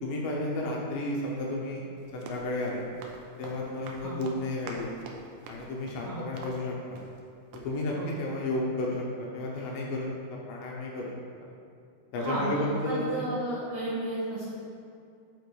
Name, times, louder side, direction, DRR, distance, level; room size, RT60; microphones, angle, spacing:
voice 1, 0.0-1.8 2.1-2.9 3.4-4.9 5.5-7.0 7.6-11.1 11.4-11.5 12.1-13.1, left 1 dB, 75° left, -2 dB, 2.3 m, -32 dB
Run, 2.0-7.3 7.5-7.7, right 3 dB, 85° right, 1.7 m, -46 dB
voice 2, 12.2-14.5, right 1 dB, 65° right, -9 dB, 1.6 m, -33 dB
6.9 x 4.6 x 4.8 m, 2.4 s
omnidirectional pair, 4.3 m